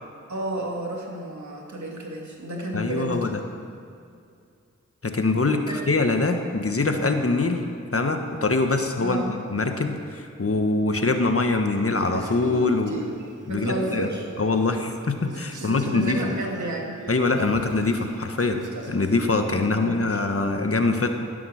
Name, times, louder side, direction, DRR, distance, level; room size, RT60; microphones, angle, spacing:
voice 1, 0.3-3.3 5.7-5.9 9.0-9.4 13.5-14.3 15.5-17.0 17.4-17.5 19.5-20.2, right 1 dB, 70° right, -1 dB, 2.4 m, -32 dB
voice 2, 2.7-3.4 5.0-7.6 7.9-9.2 9.5-13.0 13.5-14.1 14.4-16.2 17.1-21.1, left 3 dB, 50° left, 5 dB, 1.3 m, -23 dB
Male speech man speaking, 12.0-14.9 15.2-19.3, right 2 dB, 90° right, 1.4 m, -38 dB
16.5 x 7.8 x 6.4 m, 2.4 s
cardioid pair, 40°, 30 cm